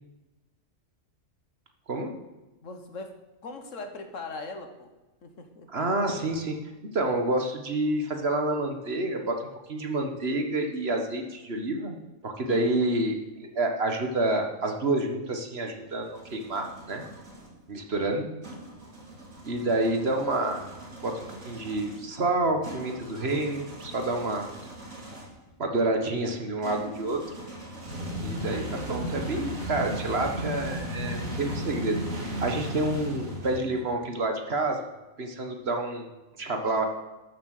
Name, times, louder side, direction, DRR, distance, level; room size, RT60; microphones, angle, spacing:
voice 1, 2.6-3.2 3.4-4.9 5.2-5.7 12.4-12.7 17.9-18.2 33.7-33.9, left 3 dB, 70° left, 7 dB, 1.6 m, -40 dB
voice 2, 5.7-6.6 6.9-9.4 9.7-12.0 12.2-17.0 17.7-18.3 19.4-20.6 21.0-24.5 25.6-27.2 28.2-34.8 35.2-36.1 36.4-36.9, right 2 dB, 50° right, 4 dB, 1.7 m, -28 dB
sound 1, 15.8-17.5 18.4-25.4 26.6-33.9, equal, 90° right, 3.1 m, -37 dB
13.0 x 7.5 x 6.6 m, 1.1 s
omnidirectional pair, 1.4 m